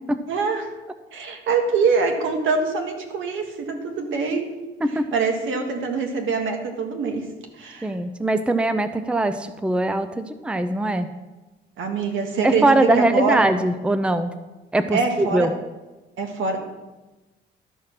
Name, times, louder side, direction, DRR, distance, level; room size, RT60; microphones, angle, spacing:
voice 1, 0.3-0.7 1.1-4.5 5.1-7.3 7.6-7.9 11.8-13.5 14.9-15.5 16.2-16.6, right 4 dB, 80° right, 4 dB, 1.7 m, -24 dB
voice 2, 7.8-11.1 12.4-14.3 14.7-15.5, right 2 dB, 5° right, 11 dB, 0.5 m, -21 dB
12.5 x 4.8 x 5.9 m, 1.1 s
cardioid pair, 90°, 20 cm